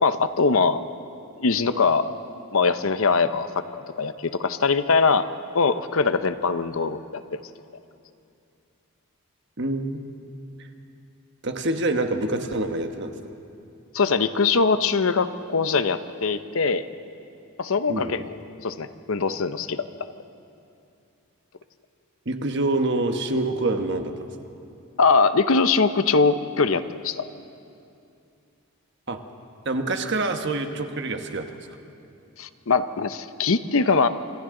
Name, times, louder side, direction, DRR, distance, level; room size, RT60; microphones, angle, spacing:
voice 1, 0.0-0.8 1.4-2.1 2.5-5.2 5.5-7.4 13.9-16.8 17.6-18.2 18.6-19.8 25.0-27.2 32.4-34.1, left 4 dB, 65° left, 11 dB, 0.7 m, -22 dB
voice 2, 9.6-10.0 10.6-10.7 11.4-13.3 17.9-18.3 22.2-24.3 29.1-29.2 29.6-31.6, right 2 dB, 50° right, 6 dB, 1.3 m, -26 dB
27.0 x 26.0 x 3.9 m, 2.7 s
head